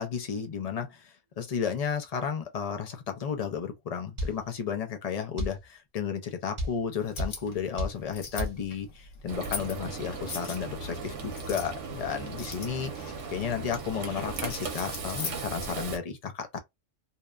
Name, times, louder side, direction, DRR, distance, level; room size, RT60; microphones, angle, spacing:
voice 1, 0.0-16.6, left 7 dB, 55° left, 0.4 m, -33 dB
sound 1, 4.2-4.4 5.4-5.6 6.6-6.8 7.2-7.4 7.8-8.0 8.4-8.6, equal, 35° right, 0.5 m, -30 dB
sound 2, 7.0-16.0, left 5 dB, 90° left, 1.2 m, -42 dB
Frying (food), 9.3-16.0, right 4 dB, 75° right, 1.0 m, -37 dB
2.8 x 2.1 x 2.3 m
omnidirectional pair, 1.3 m